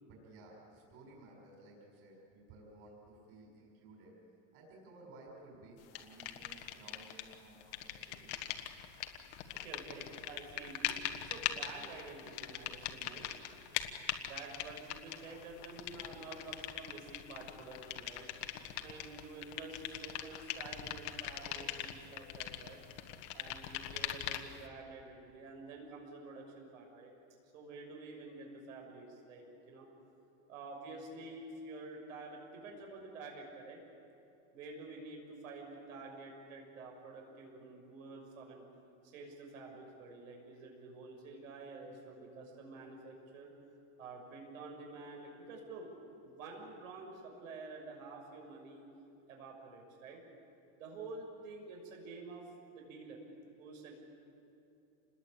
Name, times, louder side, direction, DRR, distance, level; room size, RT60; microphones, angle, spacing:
voice 1, 0.0-4.1 4.5-8.3, right 2 dB, 35° right, -1 dB, 5.4 m, -56 dB
sound 1, 6.0-7.4 7.6-24.6, left 12 dB, 40° left, 1.4 m, -41 dB
voice 2, 9.6-13.4 14.2-18.3 18.8-22.8 23.3-27.1 27.5-29.9 30.5-33.8 34.5-38.6 39.1-43.5 44.0-45.9 46.2-48.8 49.3-50.2 50.8-53.2 53.6-53.9, right 3 dB, 80° right, 1 dB, 6.5 m, -49 dB
28.0 x 21.0 x 8.7 m, 2.7 s
supercardioid pair, 175°, 40 cm